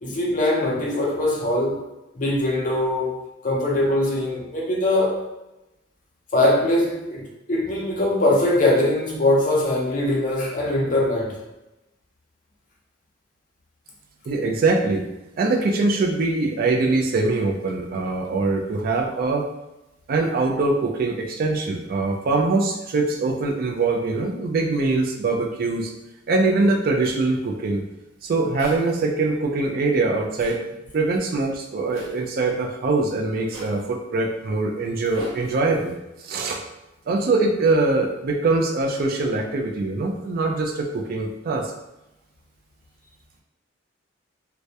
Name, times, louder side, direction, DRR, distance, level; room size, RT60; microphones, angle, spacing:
voice 1, 0.0-1.9 2.2-3.2 3.4-5.2 6.3-11.4, left 1 dB, 40° left, -3 dB, 0.5 m, -22 dB
voice 2, 14.3-15.1 15.4-19.4 20.1-25.9 26.3-27.8 28.2-30.6 30.9-36.0 36.2-36.6 37.1-41.7, right 3 dB, 45° right, 2 dB, 0.3 m, -23 dB
Zipper (clothing), 27.0-27.2 28.6-29.0 30.4-30.6 31.9-32.2 33.5-33.8 35.0-35.9, equal, 85° right, 0.8 m, -39 dB
2.2 x 2.0 x 2.7 m, 0.97 s
head